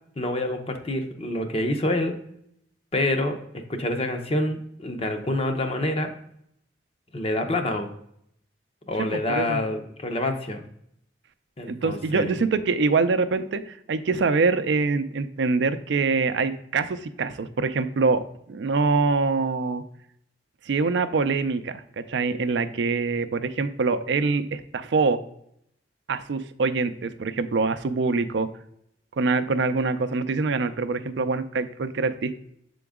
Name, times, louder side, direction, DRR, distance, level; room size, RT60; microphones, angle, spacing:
voice 1, 0.2-2.2 2.9-3.4 3.7-6.1 7.1-7.9 8.9-10.6 11.6-12.3, left 1 dB, 35° left, 6 dB, 0.7 m, -27 dB
voice 2, 9.3-9.6 11.7-19.8 20.6-25.2 26.1-28.5 29.2-32.4, right 4 dB, 75° right, 11 dB, 0.4 m, -24 dB
6.9 x 3.8 x 3.6 m, 0.73 s
head